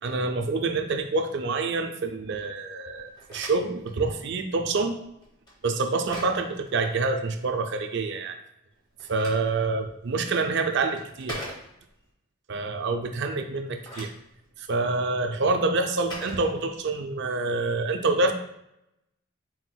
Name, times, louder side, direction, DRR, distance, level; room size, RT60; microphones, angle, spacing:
voice 1, 0.0-5.0 5.6-8.4 9.1-11.4 12.5-14.1 14.6-18.3, right 3 dB, 55° right, 7 dB, 0.4 m, -27 dB
Telephone, 3.0-7.5 8.7-12.1 13.6-17.1, equal, 20° left, 0.9 m, -44 dB
4.2 x 3.9 x 2.2 m, 0.79 s
head